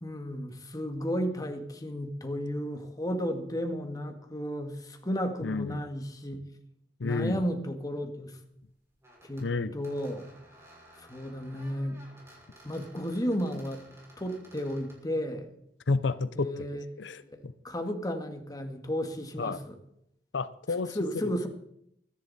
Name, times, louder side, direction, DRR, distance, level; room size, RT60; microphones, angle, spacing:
voice 1, 0.0-6.4 7.0-8.4 9.2-10.3 10.9-12.0 12.6-13.9 14.2-15.5 16.4-16.8 17.2-17.4 17.6-19.8 20.9-21.5, equal, 20° left, 5 dB, 1.8 m, -33 dB
voice 2, 5.4-5.8 7.0-7.4 9.4-9.7 15.9-16.7 17.0-17.5 19.4-19.6 20.3-21.0, left 3 dB, 90° left, 14 dB, 0.7 m, -30 dB
sound 1, 9.0-9.5 9.8-15.0, right 1 dB, 15° right, 5.9 m, -55 dB
24.0 x 10.5 x 4.2 m, 0.74 s
head